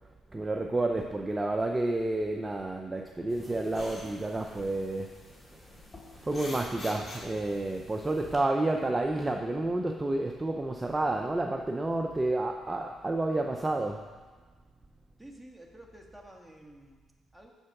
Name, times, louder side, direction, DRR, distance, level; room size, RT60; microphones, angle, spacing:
voice 1, 0.3-5.1 5.5-5.8 6.1-14.0, right 2 dB, 20° right, 3 dB, 0.6 m, -30 dB
sound 1, 3.3-8.4, left 2 dB, 35° left, 2.2 m, -47 dB
voice 2, 15.2-17.5, right 1 dB, ahead, 0 dB, 1.6 m, -51 dB
8.2 x 6.8 x 5.9 m, 1.4 s
cardioid pair, 90°, 0 cm